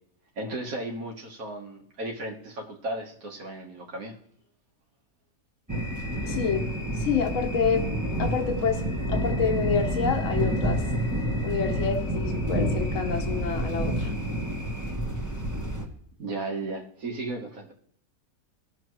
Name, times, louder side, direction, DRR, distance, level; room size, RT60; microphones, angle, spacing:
voice 1, 0.4-4.2 16.2-17.7, right 2 dB, 70° right, 0 dB, 1.9 m, -35 dB
sound 1, 5.7-15.9, right 1 dB, 15° right, 1.3 m, -28 dB
voice 2, 6.2-7.8 8.2-8.8 9.1-10.8 11.4-14.1, left 6 dB, 60° left, 3 dB, 1.4 m, -28 dB
20.0 x 6.8 x 3.1 m, 0.66 s
omnidirectional pair, 1.5 m